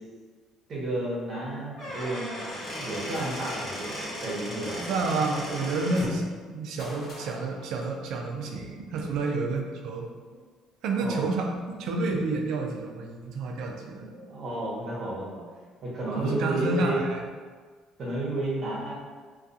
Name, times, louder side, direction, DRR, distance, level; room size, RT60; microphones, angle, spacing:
voice 1, 0.7-5.1 9.3-9.4 10.3-10.4 11.0-11.3 13.8-15.4 15.8-17.0 18.0-18.9, right 1 dB, 50° right, -5 dB, 0.9 m, -32 dB
Squeak / Wood, 1.7-6.2, equal, 45° left, 1.1 m, -36 dB
Gunshot gunfire, 3.1-3.8 4.9-5.0 5.3-6.0 6.8-8.3, left 1 dB, 65° left, 0.8 m, -46 dB
voice 2, 4.9-6.2 6.5-10.1 10.8-14.1 16.2-17.2, right 3 dB, 75° right, 2 dB, 0.4 m, -29 dB
2.3 x 2.3 x 2.6 m, 1.5 s
cardioid pair, 110°, 0 cm